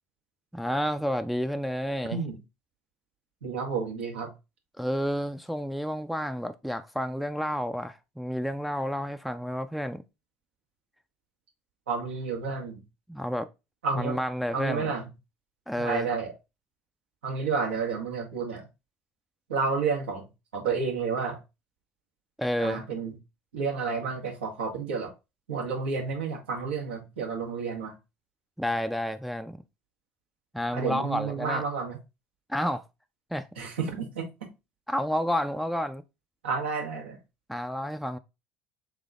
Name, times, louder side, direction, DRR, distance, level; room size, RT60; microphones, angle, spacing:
voice 1, 0.5-2.2 4.8-10.0 13.1-13.5 13.9-14.9 15.7-16.1 22.4-22.8 28.6-29.6 30.5-31.6 32.5-32.8 33.3-33.5 34.9-36.0 37.5-38.2, equal, ahead, 0.4 m, -30 dB
voice 2, 3.4-4.3 11.9-12.8 13.8-14.2 14.5-15.1 15.8-16.3 17.2-18.7 19.5-20.3 20.5-21.4 22.6-23.1 23.5-25.1 25.5-27.9 30.7-32.0 33.6-34.3 36.4-37.2, right 5 dB, 85° right, 1.3 m, -30 dB
3.6 x 3.5 x 3.6 m
hypercardioid pair, 70°, 6 cm